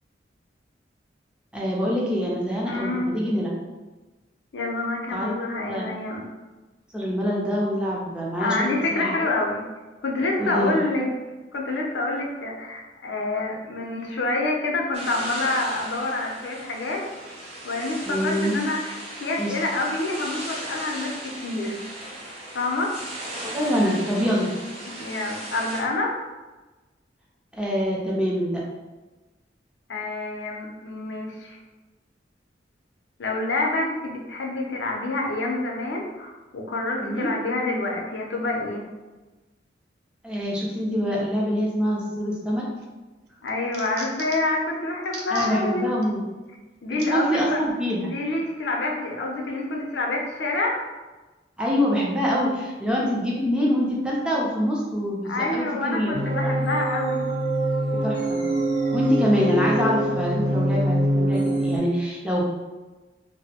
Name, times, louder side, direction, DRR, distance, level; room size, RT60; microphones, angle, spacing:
voice 1, 1.5-3.5 5.1-6.0 6.9-9.3 10.4-10.7 18.1-18.6 19.4-19.5 23.4-24.5 27.5-28.6 37.0-37.3 40.2-42.6 45.3-46.2 46.9-48.1 51.6-56.2 58.0-58.4 58.9-62.5, equal, 5° right, -4 dB, 0.5 m, -25 dB
voice 2, 2.7-3.1 4.5-6.3 8.4-9.6 10.0-11.1 11.5-17.0 17.6-21.9 22.5-22.9 24.9-26.3 29.9-31.6 33.2-38.9 43.4-45.9 46.8-47.6 48.1-50.8 55.3-57.2, left 2 dB, 75° left, 0 dB, 0.5 m, -27 dB
sound 1, 14.9-25.8, right 1 dB, 35° right, 0.8 m, -37 dB
sound 2, 42.5-42.9 43.3-44.6 45.0-45.5 46.0-46.1 47.0-47.1 47.9-48.0, right 4 dB, 60° right, 0.4 m, -39 dB
sound 3, 56.1-61.8, right 1 dB, 80° right, 0.8 m, -24 dB
2.5 x 2.0 x 2.8 m, 1.2 s
head